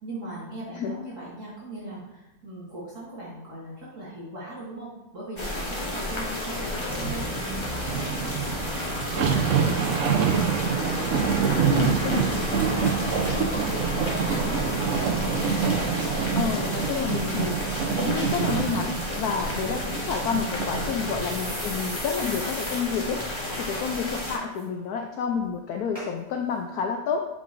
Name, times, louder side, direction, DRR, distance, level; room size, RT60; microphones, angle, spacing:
voice 1, 0.0-7.3 7.7-8.7 9.1-12.3 12.6-15.3 21.2-21.3, right 1 dB, 55° right, -8 dB, 2.3 m, -40 dB
sound 1, 5.4-24.4, left 1 dB, 20° left, 1.0 m, -31 dB
sound 2, 6.9-21.3 21.8-21.9, right 7 dB, 75° right, 0.7 m, -27 dB
voice 2, 11.6-12.3 16.3-17.6 18.0-23.2 23.6-27.3, left 6 dB, 75° left, 3 dB, 0.9 m, -29 dB
sound 3, 21.2-22.8 23.1-23.2 23.5-24.0 24.3-24.6 25.3-25.4 25.9-26.1 26.8-26.9, equal, 20° right, 2.3 m, -39 dB
8.5 x 5.3 x 2.5 m, 1.0 s
omnidirectional pair, 2.1 m